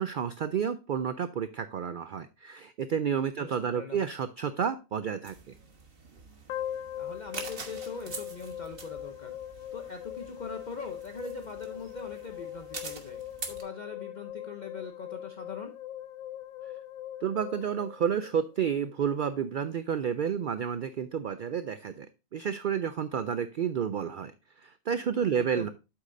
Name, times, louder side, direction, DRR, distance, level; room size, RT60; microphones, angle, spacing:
voice 1, 0.0-5.5 17.2-22.1 22.3-24.3 24.6-25.7, right 7 dB, 85° right, 12 dB, 0.4 m, -30 dB
voice 2, 3.4-4.0 7.0-9.4 9.7-15.7 25.4-25.7, left 4 dB, 40° left, 6 dB, 0.7 m, -42 dB
sound 1, 5.2-13.6, right 4 dB, 45° right, 1.4 m, -45 dB
sound 2, 6.5-18.7, left 11 dB, 80° left, 1.0 m, -41 dB
8.4 x 8.0 x 2.6 m, 0.28 s
omnidirectional pair, 1.4 m